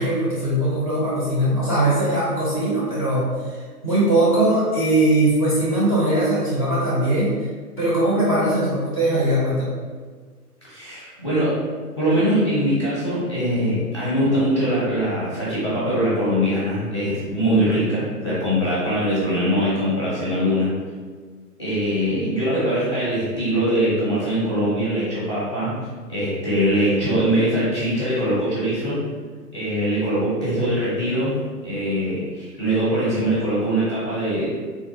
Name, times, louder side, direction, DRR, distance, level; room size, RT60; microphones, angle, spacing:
voice 1, 0.0-7.3 7.8-9.7, right 1 dB, 25° right, -9 dB, 0.6 m, -20 dB
voice 2, 10.6-11.6 12.0-20.7 21.6-25.8 26.1-29.0 29.5-31.3 31.6-34.5, equal, 20° left, -8 dB, 0.6 m, -22 dB
3.5 x 2.3 x 2.7 m, 1.5 s
figure-of-eight pair, 130°, 47 cm